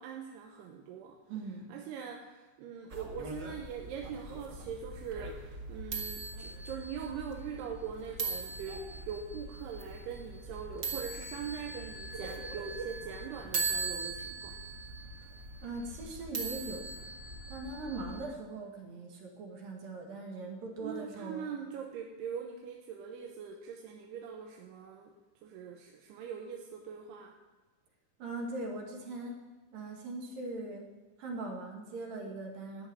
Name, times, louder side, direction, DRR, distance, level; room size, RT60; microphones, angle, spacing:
voice 1, 0.0-1.2 1.7-14.6 20.8-25.1 25.4-27.3, right 7 dB, 75° right, 2 dB, 2.8 m, -42 dB
voice 2, 1.3-1.7 15.6-16.9 17.5-21.5 28.2-29.4 29.7-30.9 31.2-32.9, right 2 dB, 55° right, 0 dB, 3.3 m, -40 dB
sound 1, 2.9-18.2, right 4 dB, 90° right, 0.9 m, -40 dB
14.0 x 6.3 x 9.8 m, 1.2 s
omnidirectional pair, 5.2 m